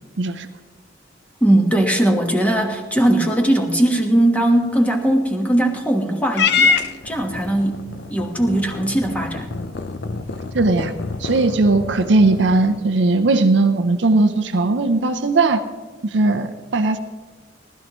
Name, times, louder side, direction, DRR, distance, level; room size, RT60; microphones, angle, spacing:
voice 1, 0.2-0.5 10.5-10.9 11.2-15.6 16.1-17.0, right 3 dB, 70° right, 7 dB, 0.6 m, -18 dB
voice 2, 1.4-7.8 8.1-9.5, right 1 dB, 10° left, 2 dB, 1.2 m, -19 dB
Purr / Meow, 6.3-12.8, left 5 dB, 60° left, 0.6 m, -25 dB
19.0 x 12.5 x 3.0 m, 1.4 s
head